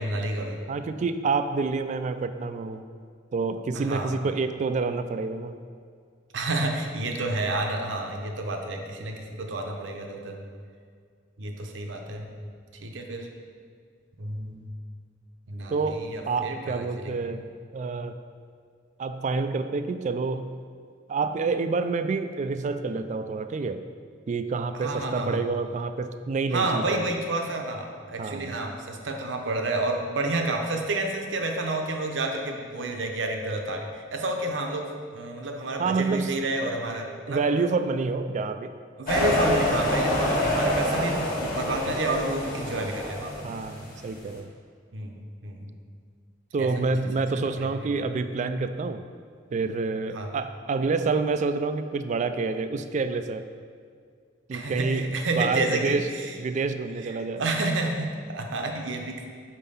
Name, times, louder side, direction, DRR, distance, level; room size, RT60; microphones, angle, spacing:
voice 1, 0.0-0.6 3.7-4.1 6.3-10.4 11.4-12.3 12.8-13.3 14.2-14.7 15.5-17.2 24.7-25.4 26.5-37.4 39.0-43.4 44.9-45.8 46.6-46.7 47.2-47.3 47.6-48.0 50.1-50.3 54.5-56.3 57.0-59.3, right 2 dB, 75° right, 3 dB, 0.8 m, -30 dB
voice 2, 0.7-2.8 3.3-5.6 15.7-18.2 19.0-20.5 21.1-23.9 24.3-27.1 28.2-28.6 35.8-36.4 37.3-38.7 43.4-44.5 46.5-49.0 49.5-53.4 54.5-56.1 56.4-57.4, right 4 dB, 40° right, 10 dB, 0.3 m, -28 dB
sound 1, 39.1-44.0, left 1 dB, 50° left, 1.5 m, -27 dB
5.4 x 4.4 x 5.5 m, 2.1 s
head